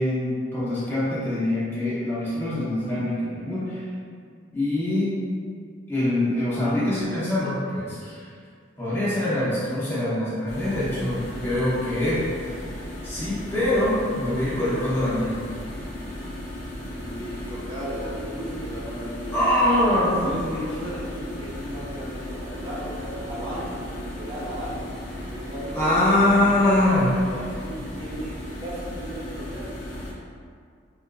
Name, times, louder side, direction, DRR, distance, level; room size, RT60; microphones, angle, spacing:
voice 1, 0.0-3.9 4.5-5.2 5.9-8.2 8.8-12.3 12.5-12.6 13.0-15.4 19.3-20.6 25.7-27.1, left 1 dB, 10° left, -11 dB, 0.8 m, -24 dB
sound 1, 10.5-30.1, left 1 dB, 90° left, 0.7 m, -36 dB
voice 2, 16.8-19.5 20.2-24.9 25.3-25.9 26.3-26.8 27.2-29.8, right 1 dB, 25° right, -8 dB, 0.7 m, -36 dB
4.3 x 2.4 x 2.2 m, 2.2 s
head